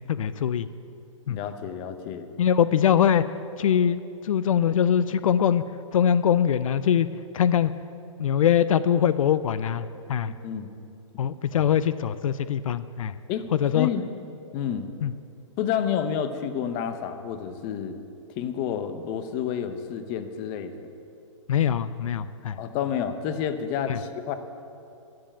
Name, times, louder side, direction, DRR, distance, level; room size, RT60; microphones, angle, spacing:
voice 1, 0.1-0.7 1.3-1.4 2.4-3.3 3.6-5.7 5.9-7.1 7.3-7.7 8.2-10.3 11.2-13.1 13.6-13.9 15.0-15.1 21.5-22.6 23.9-24.0, left 9 dB, 80° left, 15 dB, 0.4 m, -22 dB
voice 2, 1.3-2.3 10.4-10.7 11.5-11.6 13.3-13.5 13.7-14.0 14.5-14.9 15.6-17.9 18.3-20.9 22.6-24.3, left 8 dB, 30° left, 9 dB, 0.8 m, -29 dB
11.5 x 7.6 x 8.5 m, 2.6 s
hypercardioid pair, 145°, 17 cm